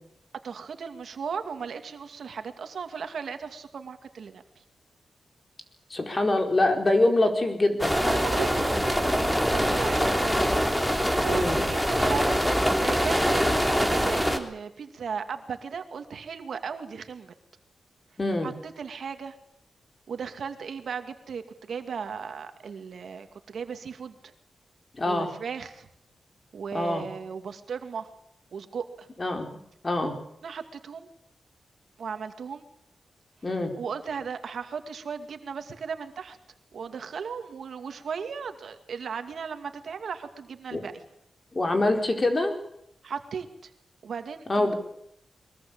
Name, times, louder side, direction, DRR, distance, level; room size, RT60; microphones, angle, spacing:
voice 1, 0.4-4.4 8.0-10.6 11.1-12.4 12.8-17.3 18.4-19.3 20.1-24.2 25.0-25.9 26.5-28.1 28.5-29.1 30.4-31.1 32.0-32.7 33.8-36.4 36.7-40.9 43.0-43.5 44.0-44.7, right 6 dB, 75° right, 7 dB, 2.3 m, -36 dB
voice 2, 5.9-8.2 11.3-11.6 18.2-18.5 25.0-25.3 26.7-27.1 29.2-29.5 29.8-30.2 33.4-33.8 40.7-40.8 41.5-42.6 44.5-44.7, left 2 dB, 30° left, 5 dB, 4.7 m, -25 dB
sound 1, 7.8-14.4, equal, 5° left, 3.2 m, -24 dB
23.0 x 21.0 x 8.8 m, 0.74 s
wide cardioid pair, 95°, 0 cm